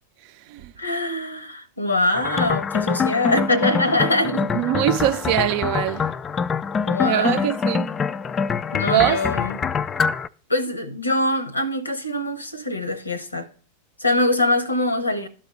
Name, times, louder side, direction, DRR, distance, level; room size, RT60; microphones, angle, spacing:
voice 1, 0.8-4.5 6.9-7.4 8.7-9.6 10.5-13.5 14.0-15.3, left 1 dB, 80° left, 0.9 m, -23 dB
sound 1, 2.1-10.3, left 6 dB, 20° left, 0.3 m, -25 dB
voice 2, 4.5-6.1 7.0-7.9 8.8-9.3, right 13 dB, 45° right, 0.5 m, -22 dB
12.5 x 4.2 x 3.1 m
figure-of-eight pair, 90°, 0 cm